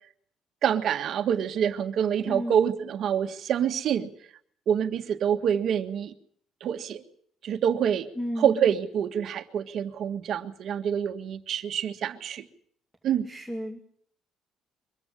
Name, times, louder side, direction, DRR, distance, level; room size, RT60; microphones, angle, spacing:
voice 1, 0.6-4.1 4.7-6.1 6.6-7.0 7.4-8.1 8.4-12.4 13.0-13.3, right 8 dB, 55° right, 7 dB, 1.7 m, -26 dB
voice 2, 2.2-2.8 8.2-8.7 13.3-13.8, equal, ahead, 4 dB, 2.5 m, -34 dB
23.5 x 15.5 x 9.9 m, 0.64 s
cardioid pair, 140°, 0 cm